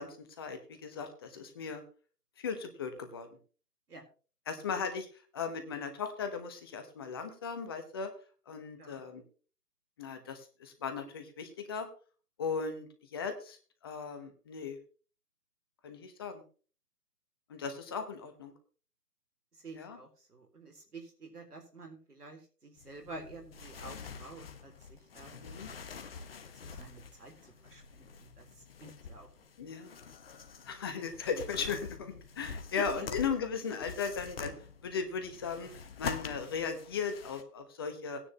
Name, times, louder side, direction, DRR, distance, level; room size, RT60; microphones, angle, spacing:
voice 1, 0.0-1.8 2.4-3.3 4.5-5.1 5.3-8.1 8.5-9.2 10.0-11.9 12.4-13.6 13.8-14.8 15.8-16.4 17.5-18.5 19.7-20.0 23.8-23.9 25.4-25.7 29.6-29.9 30.7-34.5 34.8-35.7 36.0-38.2, left 6 dB, 15° left, 7 dB, 0.9 m, -37 dB
voice 2, 19.6-25.7 26.6-27.3 27.6-28.5 28.8-29.3 32.7-33.1, right 3 dB, 75° right, 2 dB, 3.8 m, -49 dB
sound 1, 22.8-37.4, left 6 dB, 40° left, 1.2 m, -46 dB
17.0 x 9.9 x 2.9 m, 0.37 s
figure-of-eight pair, 150°, 47 cm